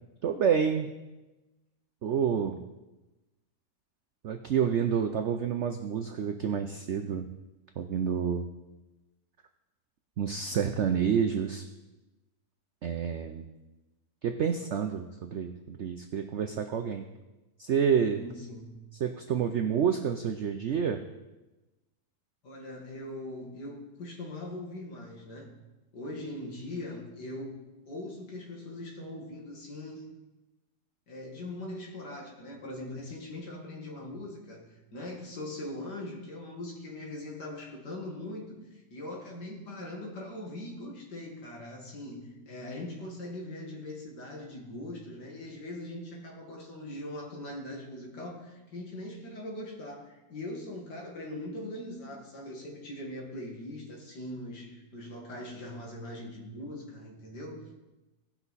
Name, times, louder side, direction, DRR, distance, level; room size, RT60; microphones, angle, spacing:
voice 1, 0.2-0.9 2.0-2.6 4.2-7.3 7.8-8.5 10.2-11.6 12.8-13.5 14.2-17.1 17.6-18.2 19.0-21.0, right 7 dB, 70° right, 6 dB, 0.6 m, -28 dB
voice 2, 18.1-18.8 22.4-25.5 25.9-30.1 31.1-57.8, left 1 dB, 70° left, 0 dB, 2.4 m, -41 dB
16.5 x 5.8 x 4.1 m, 1.1 s
omnidirectional pair, 1.9 m